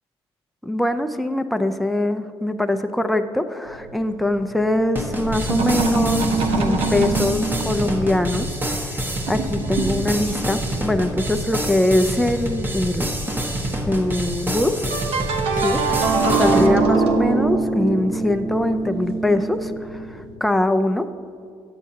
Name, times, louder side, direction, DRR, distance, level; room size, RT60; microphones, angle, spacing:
voice 1, 0.6-13.1 13.9-14.9 15.5-21.1, left 1 dB, ahead, 8 dB, 0.5 m, -23 dB
sound 1, 3.7-4.9 5.2-8.2 8.7-9.0 9.3-10.5 11.9-12.0 12.4-12.5 12.8-13.1 14.9-20.3, right 3 dB, 70° right, 1.0 m, -23 dB
sound 2, 5.0-16.7, right 1 dB, 20° right, 1.1 m, -27 dB
10.5 x 8.3 x 2.8 m, 2.3 s
supercardioid pair, 70°, 10 cm